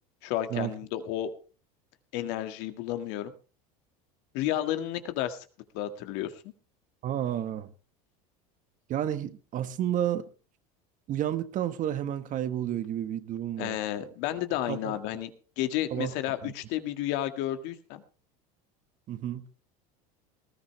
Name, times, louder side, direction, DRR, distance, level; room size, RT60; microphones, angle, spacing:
voice 1, 0.2-1.3 2.1-3.3 4.3-5.5 5.7-6.5 13.6-15.3 15.6-18.0, left 12 dB, 65° left, 1.9 m, -32 dB
voice 2, 7.0-7.7 8.9-10.3 11.1-13.8 14.7-15.0 15.9-16.1 16.4-16.5 19.1-19.5, right 11 dB, 45° right, 1.4 m, -31 dB
19.5 x 13.5 x 3.3 m
supercardioid pair, 120°, 19 cm